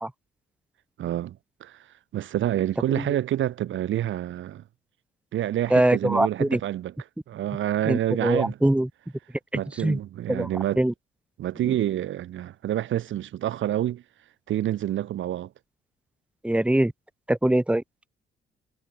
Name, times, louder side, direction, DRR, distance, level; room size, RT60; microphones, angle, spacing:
voice 1, 1.0-1.8 2.1-4.6 5.3-6.9 7.3-8.6 9.5-10.8 11.4-14.0 14.5-15.5, right 12 dB, 75° right, 3.3 m, -28 dB
voice 2, 5.7-6.6 7.9-8.9 9.8-10.0 10.3-10.5 10.8-10.9 16.4-16.9 17.3-17.8, right 1 dB, 5° right, 2.1 m, -22 dB
cardioid pair, 90°, 20 cm